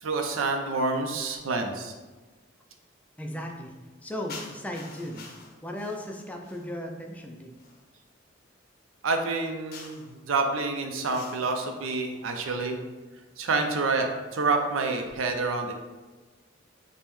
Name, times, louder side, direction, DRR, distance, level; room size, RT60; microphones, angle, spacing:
voice 1, 0.0-1.9 9.0-12.8 13.4-15.7, right 3 dB, 90° right, 4 dB, 0.5 m, -28 dB
voice 2, 3.2-3.7 4.0-5.3 5.6-7.5, left 1 dB, 5° left, 1 dB, 0.3 m, -36 dB
sound 1, 4.3-6.8 7.6-7.8 9.7-10.2 11.1-11.7, left 4 dB, 50° left, 0.6 m, -46 dB
5.2 x 2.1 x 3.0 m, 1.3 s
head